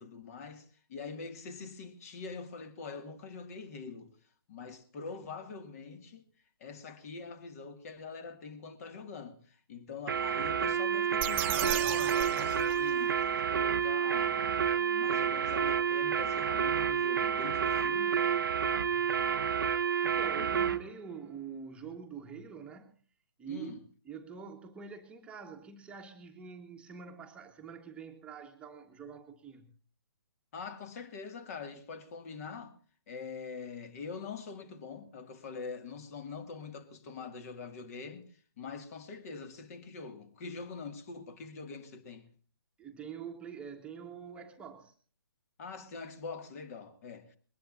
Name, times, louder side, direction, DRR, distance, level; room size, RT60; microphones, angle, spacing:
voice 1, 0.0-4.1 4.5-6.3 6.6-13.2 13.5-18.4 20.4-20.5 23.5-23.8 30.5-32.8 33.1-42.3 45.6-47.4, left 5 dB, 40° left, 2.3 m, -44 dB
sound 1, 10.1-20.8, right 7 dB, 60° right, 1.0 m, -29 dB
sound 2, 11.2-13.3, right 12 dB, 30° right, 1.0 m, -35 dB
voice 2, 18.9-19.3 19.8-23.0 23.4-23.7 24.0-29.7 42.8-44.9, right 6 dB, 10° right, 1.4 m, -46 dB
21.5 x 19.5 x 2.7 m
figure-of-eight pair, 140°, 13 cm